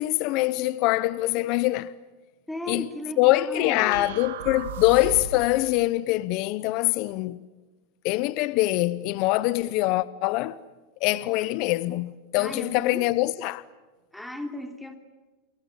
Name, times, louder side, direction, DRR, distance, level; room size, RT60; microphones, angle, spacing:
voice 1, 0.0-1.9 2.7-2.9 3.2-7.4 8.0-10.6 11.0-13.6, left 18 dB, 50° left, 0.8 m, -24 dB
voice 2, 2.5-4.1 12.4-13.1 14.1-15.0, left 1 dB, 5° left, 3.0 m, -36 dB
sound 1, 3.9-5.5, right 7 dB, 80° right, 2.7 m, -35 dB
29.0 x 22.0 x 8.7 m
supercardioid pair, 130°, 0 cm